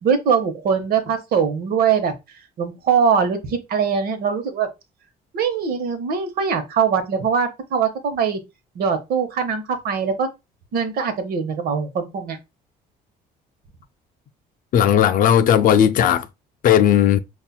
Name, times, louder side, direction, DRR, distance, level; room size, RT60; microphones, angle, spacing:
voice 1, 0.0-2.1 2.6-4.7 5.3-8.4 8.7-10.3 10.7-12.4, right 6 dB, 65° right, 0.9 m, -22 dB
voice 2, 14.7-16.3 16.6-17.2, left 9 dB, 55° left, 0.4 m, -15 dB
5.4 x 2.4 x 2.3 m
cardioid pair, 110°, 17 cm